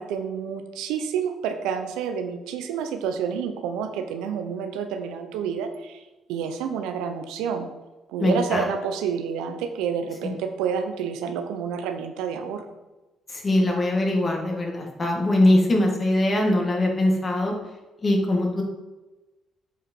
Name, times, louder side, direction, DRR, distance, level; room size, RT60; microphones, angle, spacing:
voice 1, 0.0-6.0 6.3-7.7 8.1-12.7, right 7 dB, 90° right, 7 dB, 0.7 m, -29 dB
voice 2, 8.2-8.7 13.3-17.5 18.0-18.6, left 1 dB, 35° left, 0 dB, 2.1 m, -22 dB
7.9 x 4.9 x 4.6 m, 1.1 s
cardioid pair, 75°, 0 cm